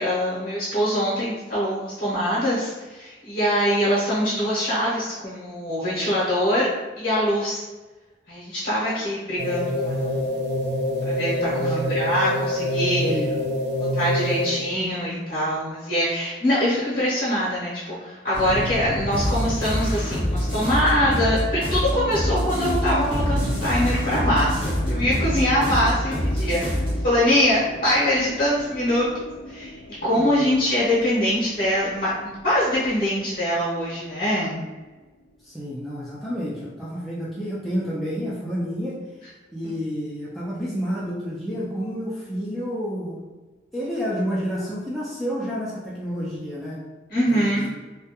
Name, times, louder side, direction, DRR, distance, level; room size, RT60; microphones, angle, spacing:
voice 1, 0.0-6.7 7.0-7.6 8.3-10.2 11.0-13.0 13.9-26.8 27.0-29.1 29.5-29.7 30.0-34.6 39.6-39.7 47.1-47.6, equal, 55° left, -9 dB, 0.7 m, -23 dB
sound 1, 9.4-14.8, equal, 70° right, 0.4 m, -25 dB
voice 2, 11.5-12.0 12.8-13.4 25.3-25.8 30.0-30.5 35.4-39.0 39.5-43.2 43.7-46.8 47.3-47.6, equal, ahead, -9 dB, 0.3 m, -30 dB
sound 2, 18.3-34.7, left 1 dB, 75° left, 0.3 m, -34 dB
sound 3, 19.1-27.0, equal, 30° right, 0.7 m, -25 dB
2.3 x 2.2 x 2.8 m, 1.2 s
head